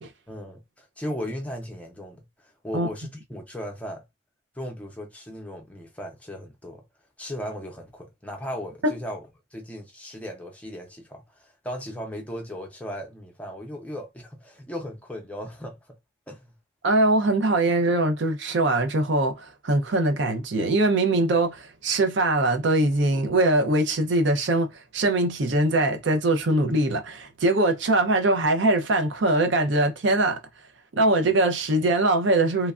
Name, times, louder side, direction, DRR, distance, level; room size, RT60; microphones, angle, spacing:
voice 1, 0.3-4.0 4.5-6.8 7.2-16.0 16.3-16.6, equal, 5° left, 0.6 m, -37 dB
voice 2, 16.8-30.4 31.0-32.7, right 2 dB, 75° right, 0.5 m, -22 dB
3.1 x 2.3 x 2.4 m
head